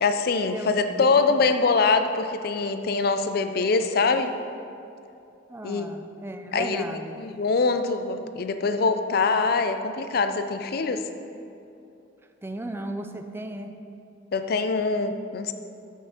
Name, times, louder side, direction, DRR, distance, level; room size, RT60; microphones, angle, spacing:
voice 1, 0.0-4.3 5.6-5.9 6.5-6.8 7.2-11.1 14.3-15.5, left 4 dB, 55° left, 9 dB, 0.4 m, -24 dB
voice 2, 0.5-1.3 5.5-7.2 12.4-13.7, right 1 dB, 10° right, 6 dB, 0.4 m, -35 dB
6.1 x 5.6 x 7.0 m, 2.6 s
head